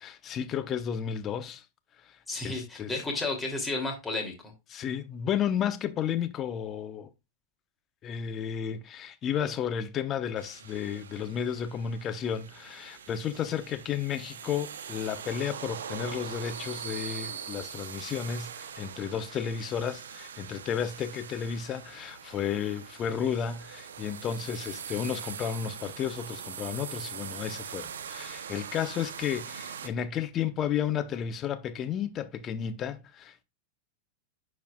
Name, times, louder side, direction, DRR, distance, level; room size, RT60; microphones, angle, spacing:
voice 1, 0.0-1.6 2.4-2.9 4.7-7.1 8.0-33.4, left 8 dB, 35° left, 0.9 m, -32 dB
voice 2, 2.3-4.5, left 2 dB, 10° left, 2.6 m, -32 dB
sound 1, 10.4-29.9, right 8 dB, 90° right, 0.7 m, -42 dB
10.5 x 4.7 x 2.3 m
hypercardioid pair, 120°, 0 cm